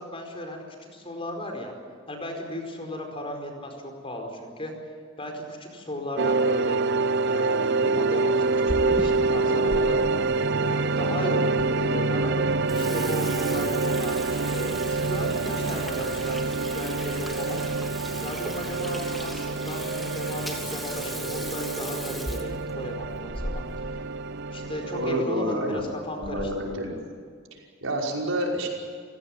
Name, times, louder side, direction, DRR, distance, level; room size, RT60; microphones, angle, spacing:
voice 1, 0.0-1.7 2.1-4.7 5.2-6.8 7.2-8.5 8.8-10.0 10.5-12.3 12.7-17.6 18.2-23.6 24.5-26.5, left 1 dB, 25° left, 3 dB, 4.8 m, -35 dB
sound 1, 6.2-25.2, right 3 dB, 55° right, 0.7 m, -26 dB
Water tap faucet / Sink (filling or washing), 8.4-9.8 10.3-10.4 11.1-11.2 11.6-11.7 12.1-12.3 12.5-24.0 24.3-24.4 24.6-24.8 25.5-25.8 26.2-26.6, equal, ahead, 2.8 m, -37 dB
Wind instrument woodwind instrument, 8.9-11.5 11.7-14.5, left 1 dB, 50° left, 7.3 m, -41 dB
voice 2, 24.9-25.9 26.2-27.0 27.5-28.7, equal, 75° right, -1 dB, 5.6 m, -28 dB
30.0 x 16.5 x 9.0 m, 2.1 s
head